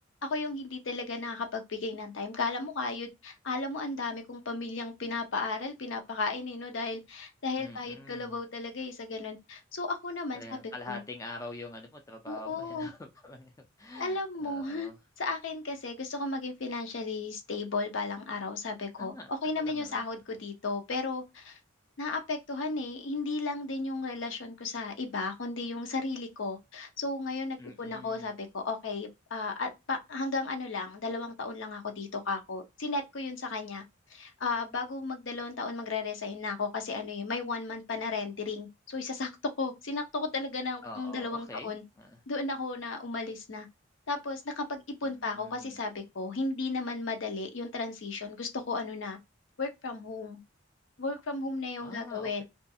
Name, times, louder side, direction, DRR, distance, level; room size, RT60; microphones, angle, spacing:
voice 1, 0.2-11.0 12.3-12.9 13.9-14.9 15.2-21.6 22.0-33.8 34.1-39.3 39.6-41.8 42.3-43.7 44.1-49.2 49.6-50.4 51.0-52.4, left 3 dB, 65° left, 0.6 m, -34 dB
voice 2, 7.6-8.3 10.3-13.5 13.8-15.0 19.0-20.0 27.6-28.3 40.8-42.2 45.0-45.8 51.8-52.4, left 2 dB, 15° left, 0.3 m, -45 dB
2.5 x 2.3 x 2.6 m
head